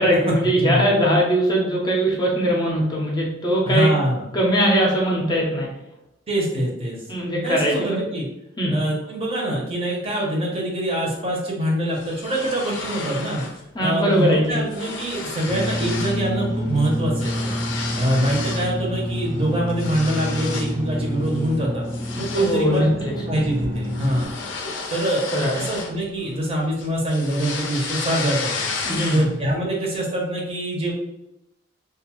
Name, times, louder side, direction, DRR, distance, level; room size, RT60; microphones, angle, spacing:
voice 1, 0.0-3.9 4.3-5.7 7.1-8.0 8.6-8.8 13.7-14.6 22.3-23.1 25.3-25.7 28.8-29.3, equal, 25° left, -2 dB, 0.6 m, -21 dB
voice 2, 3.6-4.2 6.3-7.0 7.4-8.3 8.7-13.4 13.8-17.6 18.0-21.9 22.2-22.9 23.3-24.3 24.9-28.7 29.1-30.9, right 1 dB, 30° right, -2 dB, 0.7 m, -24 dB
sound 1, 11.9-13.6 13.9-14.2 14.4-16.3 16.6-18.7 19.2-20.8 21.2-21.5 21.9-26.4 26.8-29.5, left 4 dB, 80° left, 0.5 m, -32 dB
sound 2, 15.5-24.3, equal, 80° right, 1.1 m, -28 dB
2.5 x 2.3 x 2.9 m, 0.87 s
head